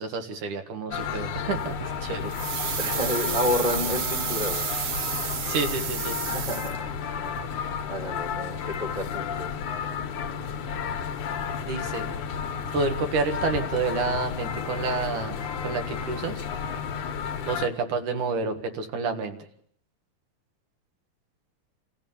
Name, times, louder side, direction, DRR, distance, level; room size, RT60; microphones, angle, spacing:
voice 1, 0.0-2.3 5.5-6.2 11.6-12.1 12.7-15.4 15.6-16.4 17.5-19.4, right 4 dB, 75° right, 5 dB, 3.3 m, -29 dB
sound 1, 0.9-17.7, left 7 dB, 75° left, 2.9 m, -32 dB
sound 2, 2.3-7.1 7.4-7.5, right 8 dB, 60° right, 1.8 m, -31 dB
voice 2, 2.8-4.7 6.2-7.2 7.9-9.5, left 1 dB, 20° left, 4 dB, 1.3 m, -30 dB
28.0 x 15.5 x 7.3 m, 0.67 s
omnidirectional pair, 3.6 m